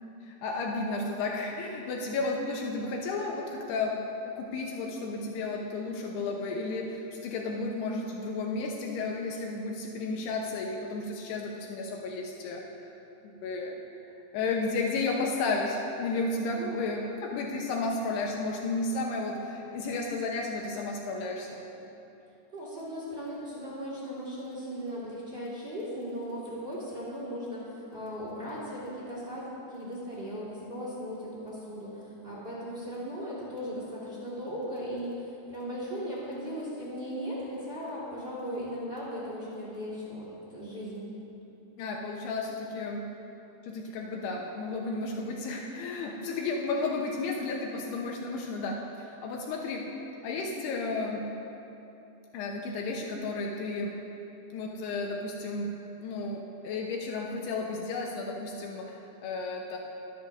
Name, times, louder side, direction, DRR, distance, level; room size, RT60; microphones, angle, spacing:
voice 1, 0.2-4.0 4.3-12.6 13.2-13.8 14.3-21.6 41.8-43.0 43.6-49.9 50.2-51.3 52.3-53.9 54.5-55.7 56.0-59.8, left 3 dB, 80° left, 0 dB, 2.8 m, -33 dB
voice 2, 22.5-41.1, equal, 80° right, -8 dB, 0.5 m, -37 dB
24.5 x 10.0 x 2.6 m, 3.0 s
omnidirectional pair, 4.8 m